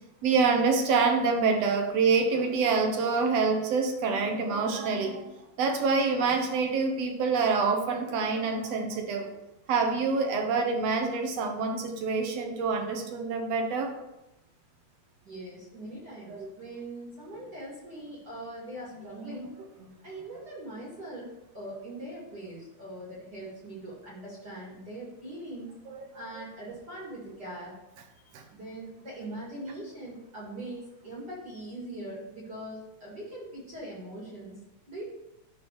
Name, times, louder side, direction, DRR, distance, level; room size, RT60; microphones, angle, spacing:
voice 1, 0.2-9.3 9.7-13.9 15.9-16.0 16.3-16.5 19.1-19.3 25.9-26.4 28.3-28.4, right 4 dB, 65° right, 3 dB, 1.9 m, -27 dB
voice 2, 15.2-19.5 20.0-25.7 26.1-27.7 28.1-34.6 34.9-35.0, right 1 dB, 35° right, -5 dB, 2.2 m, -41 dB
11.5 x 4.0 x 4.6 m, 0.93 s
omnidirectional pair, 3.6 m